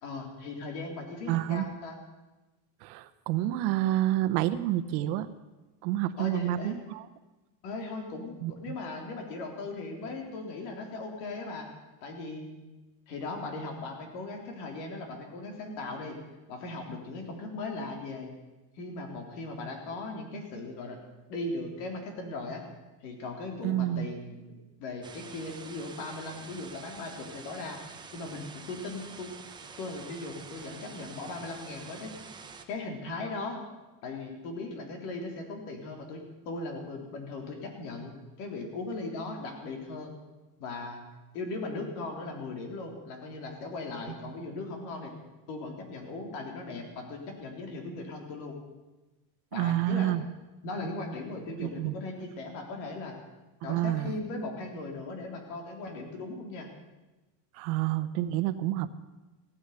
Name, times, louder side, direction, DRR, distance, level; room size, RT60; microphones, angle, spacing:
voice 1, 0.0-2.0 6.2-6.8 7.6-11.7 12.0-12.6 13.1-16.2 16.5-18.3 18.8-21.0 21.3-22.6 23.0-27.8 28.1-29.3 29.8-32.2 32.7-33.6 34.0-40.2 40.6-41.0 41.3-45.1 45.5-48.6 49.5-50.1 50.6-53.2 53.6-56.7, left 2 dB, 85° left, 3 dB, 3.8 m, -38 dB
voice 2, 1.3-1.7 2.8-5.3 5.8-7.1 8.4-8.5 23.6-24.1 49.5-50.3 51.6-52.0 53.7-54.1 57.5-58.9, right 13 dB, 65° right, 12 dB, 1.0 m, -28 dB
sound 1, 25.0-32.6, right 5 dB, 10° right, 0.6 m, -47 dB
15.5 x 10.0 x 8.2 m, 1.1 s
cardioid pair, 175°, 49 cm